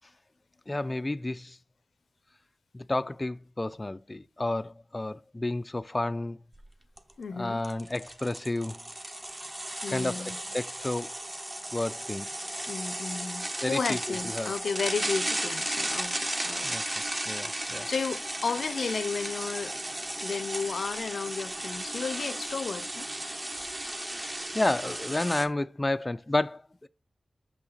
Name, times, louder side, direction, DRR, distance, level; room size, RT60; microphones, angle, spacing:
voice 1, 0.7-1.6 2.7-6.4 7.3-8.8 9.9-11.1 11.7-12.3 13.6-14.5 16.6-16.8 17.3-17.9 24.2-26.9, left 2 dB, 25° left, 0.3 m, -31 dB
sound 1, 6.6-6.7 7.0-7.1 7.6-25.5, right 1 dB, 25° right, 1.2 m, -35 dB
voice 2, 7.2-7.6 9.8-10.4 12.6-16.7 17.9-19.8 20.2-23.1, left 5 dB, 80° left, 0.5 m, -33 dB
6.4 x 5.8 x 4.0 m
wide cardioid pair, 90°, 0 cm